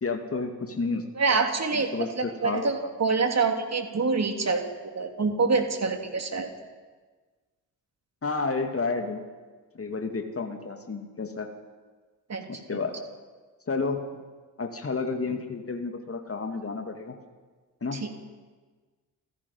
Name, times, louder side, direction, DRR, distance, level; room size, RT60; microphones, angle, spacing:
voice 1, 0.0-1.1 1.7-2.7 8.2-9.2 9.7-11.5 12.5-12.9 13.7-14.0 14.6-17.2 17.8-18.0, left 4 dB, 30° left, 5 dB, 2.4 m, -31 dB
voice 2, 1.2-1.9 2.4-6.5 12.3-12.4 18.0-18.1, right 4 dB, 30° right, 5 dB, 3.1 m, -26 dB
28.5 x 16.5 x 5.6 m, 1.4 s
figure-of-eight pair, 40°, 48 cm